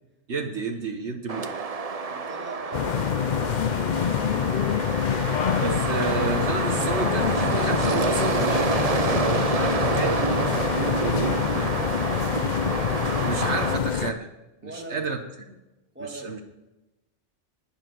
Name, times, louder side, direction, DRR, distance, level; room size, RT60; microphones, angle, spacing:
voice 1, 0.3-1.5 5.6-10.2 13.3-14.3 14.6-15.2 16.0-16.4, right 4 dB, 70° right, 5 dB, 1.5 m, -30 dB
sound 1, 1.3-13.8, right 5 dB, 35° right, 0.8 m, -28 dB
voice 2, 2.1-3.7 11.1-12.0 14.6-15.1 15.9-16.4, right 2 dB, 10° right, 2 dB, 2.0 m, -41 dB
sound 2, 2.7-14.1, left 8 dB, 55° left, 0.5 m, -26 dB
sound 3, 6.4-9.0, left 8 dB, 75° left, 1.1 m, -43 dB
19.5 x 7.4 x 6.2 m, 1.0 s
omnidirectional pair, 1.2 m